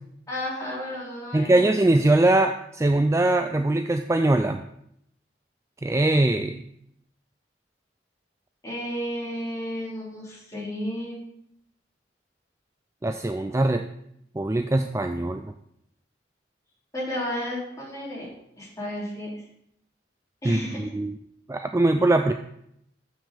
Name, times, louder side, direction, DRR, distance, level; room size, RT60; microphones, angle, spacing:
voice 1, 0.3-1.7 8.6-11.2 16.9-18.3 18.6-19.3 20.4-20.9, left 1 dB, 15° left, -6 dB, 3.6 m, -32 dB
voice 2, 1.3-4.6 5.8-6.6 13.0-13.8 14.4-15.5 20.4-21.1 21.5-22.3, right 2 dB, 15° right, 7 dB, 0.3 m, -22 dB
7.3 x 6.1 x 6.5 m, 0.74 s
head